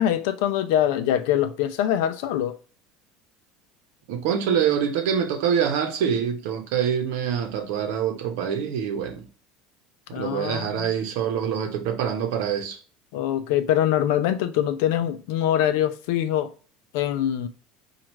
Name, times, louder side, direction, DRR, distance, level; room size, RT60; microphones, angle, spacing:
voice 1, 0.0-2.6 10.1-10.9 13.1-16.5 16.9-17.5, left 11 dB, 80° left, 0.5 m, -23 dB
voice 2, 4.1-9.2 10.1-12.8, right 8 dB, 80° right, 0.8 m, -25 dB
4.5 x 2.4 x 3.1 m
supercardioid pair, 105°, 0 cm